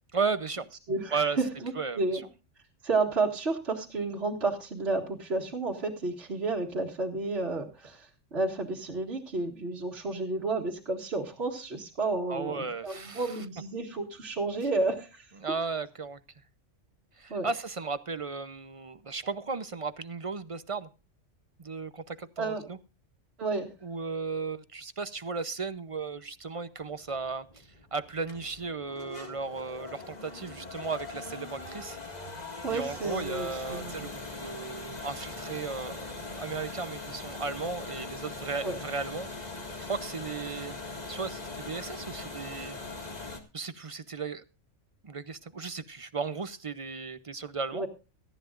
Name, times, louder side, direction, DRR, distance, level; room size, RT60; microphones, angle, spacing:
voice 1, 0.1-0.7 1.1-1.4 1.8-2.2 12.3-13.3 15.4-16.2 17.2-20.9 21.6-22.8 23.8-32.0 32.7-39.3 39.8-40.8 41.1-42.8 43.5-44.4 45.0-47.8, right 4 dB, 35° right, 0.5 m, -35 dB
voice 2, 0.9-2.2 2.8-15.3 17.3-17.5 22.4-22.7 23.4-23.7 32.6-34.1 38.6-38.8 47.7-47.9, right 3 dB, 55° right, 2.2 m, -31 dB
sound 1, 26.8-43.4, left 3 dB, 35° left, 2.0 m, -41 dB
18.5 x 14.5 x 2.5 m
omnidirectional pair, 1.3 m